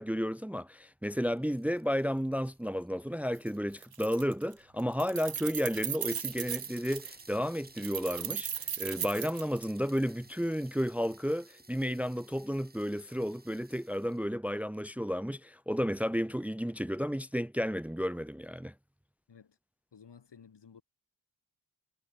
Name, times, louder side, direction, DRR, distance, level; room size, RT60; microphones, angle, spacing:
voice 1, 0.0-8.5 8.8-18.7, equal, 5° right, 0.8 m, -32 dB
sound 1, 1.1-3.9 4.7-4.8 5.1-5.2 5.5-5.6 6.1-14.2, right 2 dB, 20° right, 3.6 m, -56 dB
Keys jangling, 3.3-3.5 3.8-4.5 4.8-7.2 7.8-10.0, right 9 dB, 60° right, 0.9 m, -37 dB
voice 2, 19.9-20.8, left 6 dB, 75° left, 6.5 m, -55 dB
wide cardioid pair, 75°, 41 cm